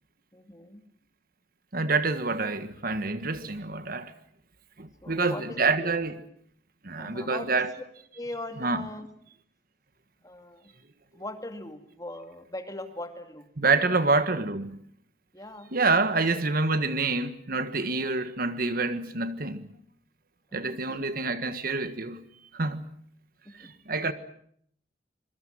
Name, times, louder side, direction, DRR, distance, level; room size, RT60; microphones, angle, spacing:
voice 1, 0.3-0.8 5.0-5.9 7.0-7.6 8.1-9.1 10.2-10.7 11.1-13.5 14.0-14.1 15.3-15.7 20.5-20.6 20.9-21.1 23.4-23.7, left 1 dB, 20° left, 2.5 m, -40 dB
voice 2, 1.7-4.1 4.8-6.2 6.8-7.7 8.6-8.8 13.6-14.8 15.7-19.7 20.5-22.2 22.5-22.8 23.6-24.1, right 3 dB, 50° right, 1.6 m, -27 dB
26.0 x 22.5 x 7.7 m
head